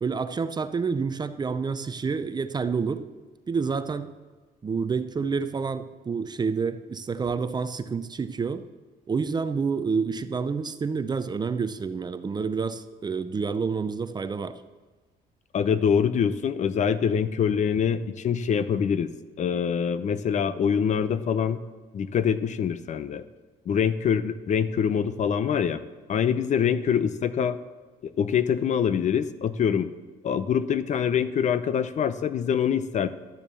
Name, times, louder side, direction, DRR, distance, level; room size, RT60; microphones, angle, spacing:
voice 1, 0.0-3.0 3.5-4.1 4.6-8.6 9.1-14.5, right 5 dB, 25° right, 11 dB, 0.6 m, -28 dB
voice 2, 15.5-19.1 19.4-21.6 21.9-23.2 23.7-25.8 26.1-27.6 28.0-29.9 30.2-33.1, left 7 dB, 45° left, 14 dB, 0.6 m, -24 dB
12.0 x 7.1 x 6.9 m, 1.3 s
cardioid pair, 110°, 17 cm